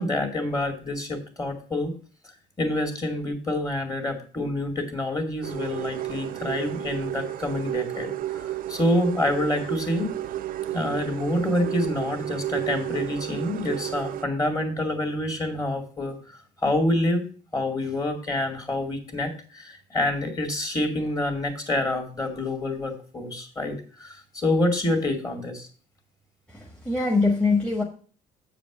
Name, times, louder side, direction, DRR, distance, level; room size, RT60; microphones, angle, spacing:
voice 1, 0.0-1.9 2.6-10.1 10.7-17.2 17.5-25.7, left 1 dB, 20° left, 4 dB, 2.2 m, -27 dB
sound 1, 5.4-14.2, right 13 dB, 55° right, 0.5 m, -32 dB
voice 2, 26.5-27.8, left 3 dB, 5° left, 1 dB, 1.4 m, -23 dB
7.7 x 5.0 x 6.1 m, 0.40 s
cardioid pair, 110°, 17 cm